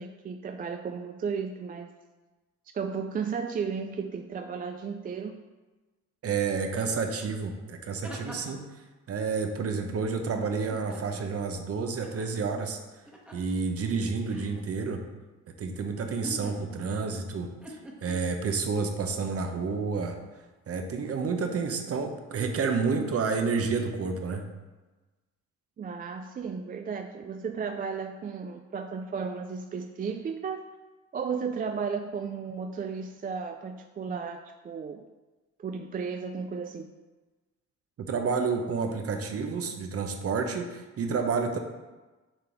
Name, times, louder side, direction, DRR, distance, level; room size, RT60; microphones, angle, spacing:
voice 1, 0.0-1.9 2.7-5.4 25.8-30.6 31.1-35.0 35.6-36.9, right 5 dB, 30° right, 6 dB, 0.4 m, -34 dB
voice 2, 6.2-8.6 9.1-12.8 13.3-15.0 15.6-20.2 20.7-24.4 38.0-41.6, right 4 dB, 50° right, 5 dB, 0.9 m, -30 dB
sound 1, 7.2-7.3 7.7-8.7 10.5-11.4 12.0-12.3 13.1-13.5 14.2-14.6 16.0-17.0 17.6-18.1, equal, 5° right, 1.2 m, -44 dB
6.7 x 3.8 x 4.5 m, 1.2 s
cardioid pair, 90°, 30 cm